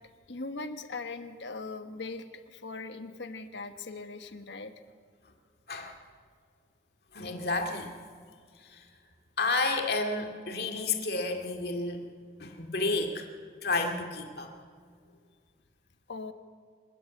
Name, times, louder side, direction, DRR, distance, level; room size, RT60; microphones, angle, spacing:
voice 1, 0.3-4.7 16.1-16.3, left 3 dB, 80° left, 8 dB, 1.3 m, -40 dB
voice 2, 7.1-7.9 8.6-8.8 9.4-12.0 12.4-13.3 13.6-14.5, left 3 dB, 60° left, 3 dB, 2.3 m, -31 dB
27.0 x 13.5 x 8.6 m, 2.1 s
head